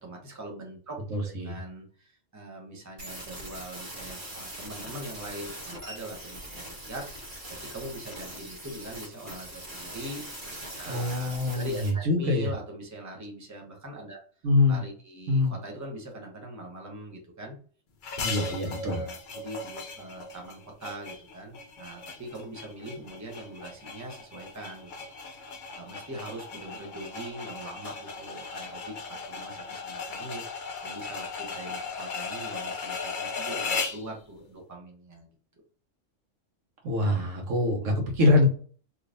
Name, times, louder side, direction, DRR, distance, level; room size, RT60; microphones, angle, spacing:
voice 1, 0.0-7.3 7.7-14.2 14.7-17.6 18.9-30.4 30.8-35.3, right 1 dB, 15° right, 0 dB, 0.8 m, -42 dB
voice 2, 1.1-1.6 10.9-12.5 14.4-14.8 15.3-15.5 18.2-19.0 36.8-38.5, left 2 dB, 85° right, 1 dB, 1.4 m, -24 dB
sound 1, 3.0-11.9, right 1 dB, 40° right, 1.2 m, -41 dB
sound 2, 18.0-34.1, left 4 dB, 50° left, 0.6 m, -37 dB
3.5 x 3.0 x 2.5 m, 0.41 s
omnidirectional pair, 1.3 m